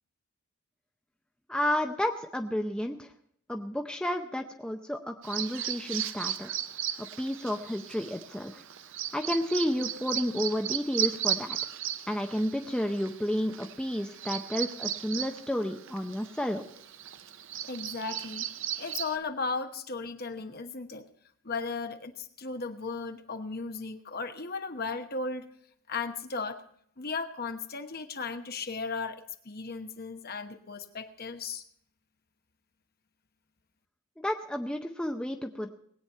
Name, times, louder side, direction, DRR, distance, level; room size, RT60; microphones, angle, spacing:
voice 1, 1.5-3.1 3.5-6.5 7.0-8.5 9.1-11.6 12.1-16.7 34.2-35.7, left 1 dB, 5° left, 4 dB, 0.5 m, -31 dB
Bird vocalization bird call bird song, 5.2-19.2, right 10 dB, 60° right, 0.6 m, -36 dB
voice 2, 17.6-18.5 18.8-21.1 21.4-25.5 25.9-26.6 27.0-31.6, left 4 dB, 45° left, 6 dB, 1.1 m, -36 dB
20.0 x 8.8 x 5.5 m, 0.66 s
head